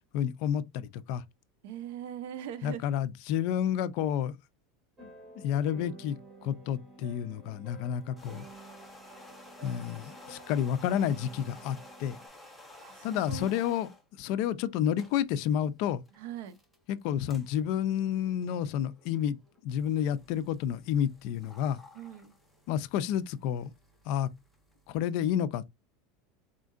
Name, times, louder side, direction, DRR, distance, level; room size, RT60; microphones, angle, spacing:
voice 1, 0.1-1.2 2.6-4.3 5.0-5.1 5.4-6.2 6.4-8.4 9.6-12.2 13.0-13.9 14.2-16.0 16.9-19.4 19.6-21.8 22.7-23.7 24.1-24.3 24.9-25.7, left 9 dB, 50° left, 0.4 m, -30 dB
voice 2, 1.6-2.8 12.7-13.6 16.1-16.6 21.9-22.4, right 10 dB, 65° right, 0.7 m, -41 dB
sound 1, 5.0-12.3, right 3 dB, 20° right, 1.6 m, -51 dB
sound 2, 8.0-14.0 14.7-25.1, left 2 dB, ahead, 0.9 m, -54 dB
4.3 x 3.7 x 2.4 m
supercardioid pair, 160°, 0 cm